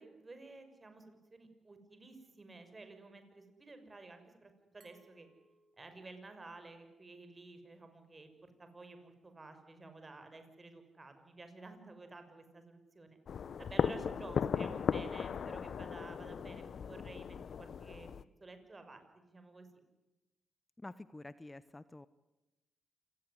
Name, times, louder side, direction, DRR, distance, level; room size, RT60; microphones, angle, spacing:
voice 1, 0.0-5.3 5.8-13.2 13.6-19.7, right 3 dB, 35° right, 8 dB, 6.1 m, -53 dB
Glass, 4.8-7.6, right 3 dB, 60° right, 6.2 m, -71 dB
sound 1, 13.3-18.2, left 7 dB, 65° left, 0.9 m, -37 dB
voice 2, 20.8-22.1, left 2 dB, 20° left, 15 dB, 1.0 m, -49 dB
27.5 x 18.5 x 9.7 m, 1.0 s
supercardioid pair, 50°, 0 cm